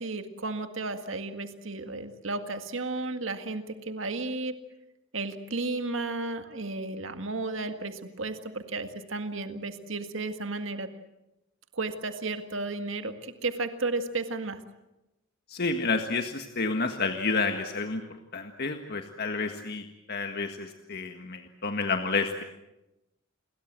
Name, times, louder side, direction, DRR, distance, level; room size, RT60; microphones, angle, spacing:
voice 1, 0.0-4.6 5.1-10.9 11.7-14.6, right 3 dB, 70° right, 8 dB, 2.0 m, -33 dB
voice 2, 15.5-18.0 18.3-19.8 20.1-22.4, left 4 dB, 55° left, 5 dB, 1.7 m, -30 dB
29.0 x 22.0 x 7.6 m, 0.95 s
head